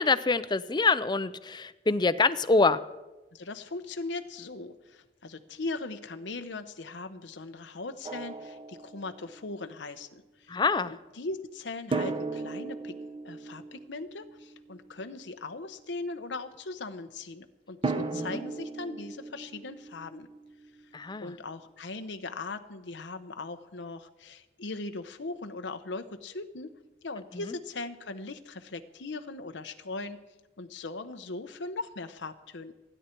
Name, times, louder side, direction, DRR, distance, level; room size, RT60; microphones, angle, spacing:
voice 1, 0.0-2.8 10.5-10.9 18.0-18.4 20.9-21.3 27.5-27.6, left 3 dB, 25° left, 14 dB, 0.5 m, -26 dB
voice 2, 3.3-13.0 13.2-20.3 21.2-26.7 27.0-30.3 30.6-32.7, left 3 dB, 90° left, 8 dB, 0.9 m, -39 dB
Drum, 8.0-9.4 11.9-14.9 17.8-20.7, right 3 dB, 30° right, 0.8 m, -36 dB
29.5 x 10.0 x 4.5 m, 1.1 s
head